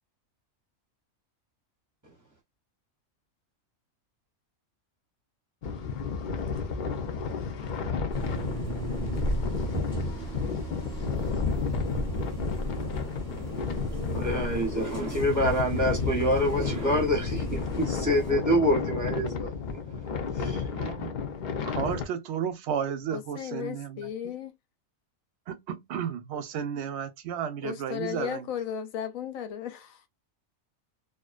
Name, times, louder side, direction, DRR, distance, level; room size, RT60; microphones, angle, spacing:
sound 1, 5.6-22.0, left 5 dB, 65° left, 0.4 m, -32 dB
sound 2, 8.1-18.3, right 2 dB, 5° left, 1.0 m, -36 dB
voice 1, 14.1-20.0 20.4-20.6, equal, 20° right, 0.6 m, -27 dB
voice 2, 20.7-21.1 21.7-24.3 25.5-28.5, right 8 dB, 65° right, 0.8 m, -33 dB
voice 3, 23.1-24.5 27.6-29.9, left 9 dB, 85° left, 1.0 m, -35 dB
2.5 x 2.1 x 2.3 m
omnidirectional pair, 1.4 m